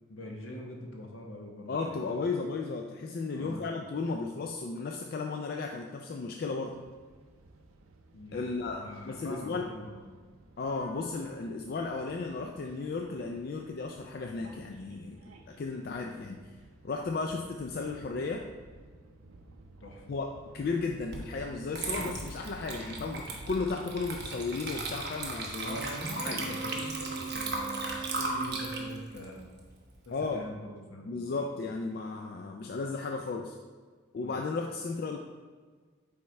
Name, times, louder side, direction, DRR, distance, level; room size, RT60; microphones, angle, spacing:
voice 1, 0.1-2.2 3.3-3.7 8.1-10.0 19.8-20.1 25.6-29.4 30.1-31.7 34.2-34.4, equal, 75° left, 0 dB, 1.1 m, -43 dB
voice 2, 1.7-6.7 8.3-9.7 10.6-15.2 15.5-16.4 16.8-18.4 20.1-25.8 26.2-26.6 30.1-30.4 31.0-33.6 34.1-35.2, left 4 dB, 45° left, 2 dB, 0.3 m, -34 dB
sound 1, 6.6-24.5, right 2 dB, 80° right, 0.5 m, -53 dB
Water / Liquid, 21.1-21.3 21.7-30.2, right 3 dB, 50° right, 0.9 m, -37 dB
Wind instrument woodwind instrument, 26.2-29.1, right 4 dB, 15° right, 1.1 m, -40 dB
8.6 x 3.5 x 3.2 m, 1.5 s
head